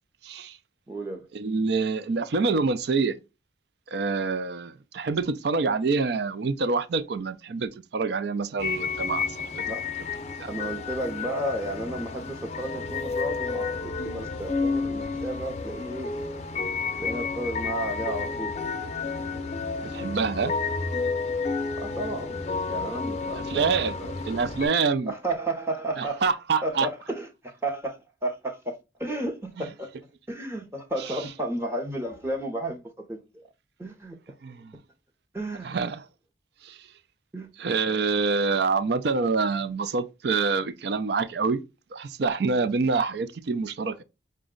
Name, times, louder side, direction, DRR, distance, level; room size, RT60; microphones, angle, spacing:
voice 1, 0.2-0.6 1.3-3.2 3.9-9.3 9.6-9.7 10.4-10.5 19.8-20.5 23.3-24.0 24.3-25.1 25.9-26.9 29.6-29.7 31.0-31.4 34.4-34.7 35.6-36.0 36.6-36.8 37.6-41.6 41.9-44.0, right 4 dB, 55° right, 0.4 m, -26 dB
voice 2, 0.9-1.2 9.6-9.8 10.5-16.1 17.0-18.5 21.7-22.4 22.7-24.1 25.1-26.2 26.6-28.7 29.0-29.9 30.3-33.4 33.8-34.2 35.3-35.8 37.3-37.5, right 1 dB, 15° right, 0.7 m, -33 dB
sound 1, 8.6-24.7, left 4 dB, 35° left, 0.5 m, -31 dB
5.0 x 2.2 x 3.7 m
head